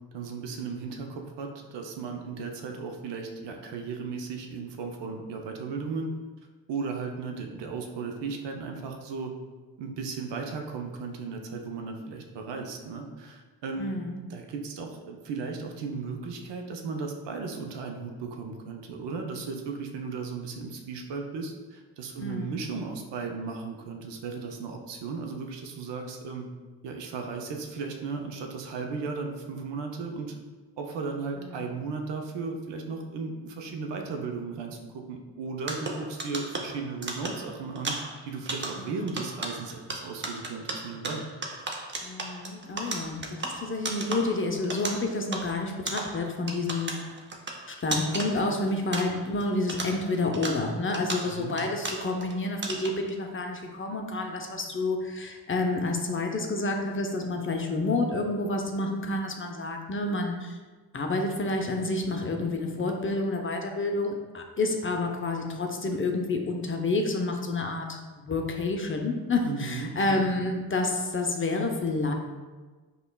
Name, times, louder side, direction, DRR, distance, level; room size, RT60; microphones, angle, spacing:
voice 1, 0.1-6.1 6.7-9.3 9.8-14.0 14.3-26.5 26.8-30.3 30.8-41.3 51.2-51.6 69.5-70.3, right 4 dB, 70° right, 3 dB, 0.6 m, -36 dB
voice 2, 13.8-14.2 22.2-22.5 31.4-31.7 38.7-38.9 42.0-46.9 47.7-60.6 60.9-72.1, left 2 dB, 30° left, 3 dB, 0.6 m, -29 dB
sound 1, 35.6-49.4 49.7-52.3 52.6-53.1, right 2 dB, 25° right, 0.6 m, -36 dB
5.1 x 2.4 x 2.2 m, 1.3 s
supercardioid pair, 45°, 44 cm